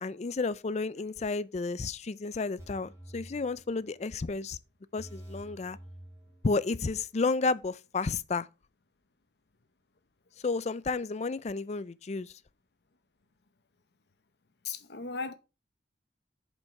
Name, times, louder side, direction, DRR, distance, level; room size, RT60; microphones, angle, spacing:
voice 1, 0.0-4.6 4.9-5.8 6.4-8.5 10.4-12.3, left 3 dB, 40° left, 0.4 m, -32 dB
sound 1, 2.6-4.1 4.4-4.5 5.0-6.9 7.2-7.3, right 1 dB, 15° right, 2.9 m, -49 dB
voice 2, 14.6-15.3, left 5 dB, 60° left, 0.8 m, -36 dB
7.2 x 5.3 x 4.7 m
head